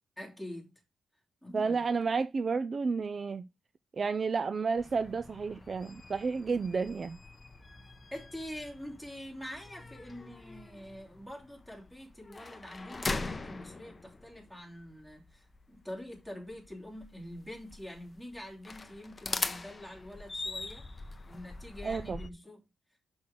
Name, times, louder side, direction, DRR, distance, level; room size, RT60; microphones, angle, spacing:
voice 1, 0.2-0.8 1.4-1.8 8.1-20.8 21.2-22.6, left 1 dB, 5° right, 3.1 m, -45 dB
voice 2, 1.5-3.5 3.9-7.2 21.8-22.3, right 4 dB, 40° right, 0.4 m, -31 dB
sound 1, 4.8-22.3, left 3 dB, 25° left, 0.7 m, -42 dB
6.1 x 6.1 x 3.5 m
cardioid pair, 120°, 0 cm